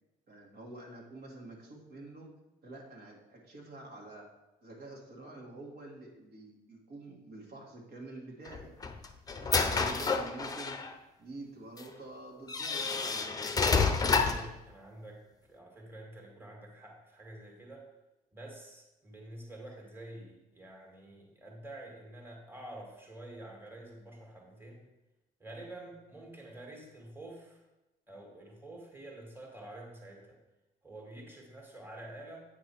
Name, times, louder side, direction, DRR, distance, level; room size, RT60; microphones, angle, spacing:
voice 1, 0.3-2.3 2.6-4.2 4.6-8.7 9.4-10.8 11.2-12.9, right 2 dB, 60° right, -1 dB, 1.9 m, -47 dB
sound 1, 8.5-10.9 11.8-11.9 12.5-14.5, left 4 dB, 20° left, 0.6 m, -29 dB
voice 2, 13.6-15.2 15.5-17.8 18.3-24.9 25.4-27.6 28.1-30.4 30.8-32.4, right 1 dB, 10° right, -1 dB, 1.8 m, -48 dB
8.4 x 4.8 x 4.5 m, 0.98 s
cardioid pair, 110°, 17 cm